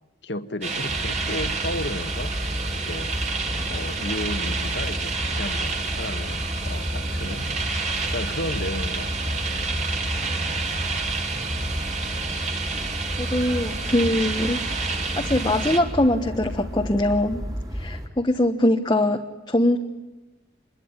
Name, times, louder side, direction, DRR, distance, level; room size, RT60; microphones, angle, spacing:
voice 1, 0.2-2.3 2.9-3.1 3.7-7.5 8.1-9.4, left 1 dB, 65° left, 9 dB, 1.8 m, -33 dB
sound 1, 0.6-15.8, right 4 dB, 35° right, 3.1 m, -30 dB
sound 2, 0.9-18.1, equal, 20° right, 3.0 m, -32 dB
voice 2, 13.2-14.6 15.2-17.4 17.7-19.8, left 1 dB, 20° left, 3 dB, 1.2 m, -22 dB
27.0 x 22.5 x 9.7 m, 1.1 s
head